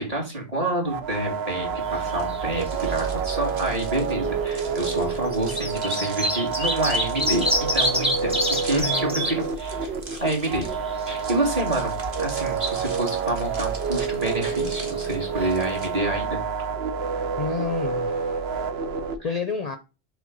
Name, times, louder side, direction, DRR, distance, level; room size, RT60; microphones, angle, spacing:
voice 1, 0.0-9.9 10.2-10.7 11.1-16.4 19.2-19.3, right 1 dB, 35° right, 2.4 m, -28 dB
sound 1, 0.9-19.2, right 6 dB, 70° right, 1.0 m, -28 dB
sound 2, 1.9-2.6 2.9-3.0 4.1-4.2 5.1-9.3 9.8-9.9 10.2-11.2 15.1-15.2 15.4-15.5, equal, 5° right, 1.3 m, -26 dB
sound 3, 2.1-15.9, right 3 dB, 55° right, 1.4 m, -43 dB
voice 2, 8.7-9.2 17.4-18.4 19.2-19.8, left 5 dB, 45° left, 0.6 m, -29 dB
6.4 x 3.5 x 5.3 m
omnidirectional pair, 1.1 m